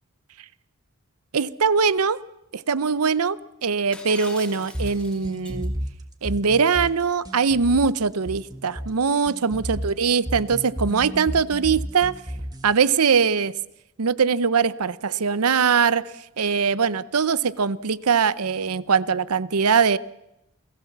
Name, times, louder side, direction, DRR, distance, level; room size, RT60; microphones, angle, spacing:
voice 1, 1.3-2.2 2.5-5.7 6.2-12.1 12.6-13.5 14.0-16.0 16.4-20.0, right 5 dB, 80° right, 17 dB, 0.7 m, -22 dB
Shatter, 3.9-5.7, left 1 dB, 5° left, 3.0 m, -42 dB
sound 1, 4.7-12.8, equal, 15° right, 1.6 m, -32 dB
28.5 x 18.0 x 7.3 m, 0.92 s
head